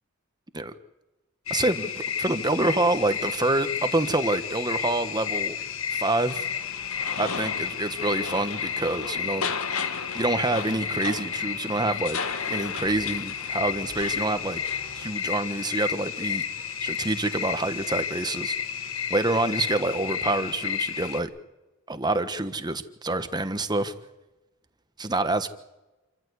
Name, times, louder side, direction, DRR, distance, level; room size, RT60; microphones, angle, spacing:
sound 1, 1.5-21.2, left 7 dB, 65° left, 1.5 m, -32 dB
voice 1, 1.5-5.6 5.9-6.5 7.2-9.5 10.1-12.2 12.5-14.6 14.9-16.4 16.8-18.5 19.1-21.3 21.9-23.9 25.0-25.5, right 2 dB, 20° right, 9 dB, 1.3 m, -27 dB
sound 2, 6.3-15.1, left 5 dB, 90° left, 1.9 m, -36 dB
28.0 x 14.5 x 8.3 m, 1.1 s
head